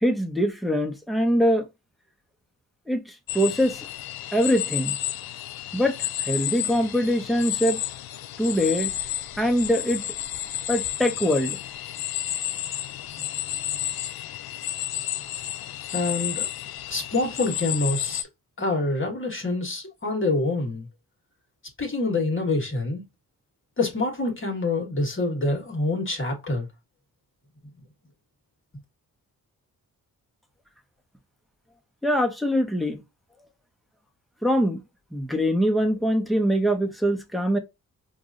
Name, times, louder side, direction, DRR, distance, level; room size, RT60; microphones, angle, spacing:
voice 1, 0.0-1.6 2.9-3.0 3.3-3.8 4.3-5.0 5.7-7.8 8.4-8.9 9.4-10.0 10.7-11.6 32.0-33.0 34.4-34.8 35.1-37.6, equal, ahead, 1.1 m, -23 dB
sound 1, 3.3-18.2, left 12 dB, 85° left, 0.5 m, -31 dB
voice 2, 15.9-16.5 16.9-18.3 18.6-20.9 21.8-23.0 23.8-26.7, left 2 dB, 35° left, 1.7 m, -26 dB
4.7 x 2.6 x 2.6 m
cardioid pair, 75°, 36 cm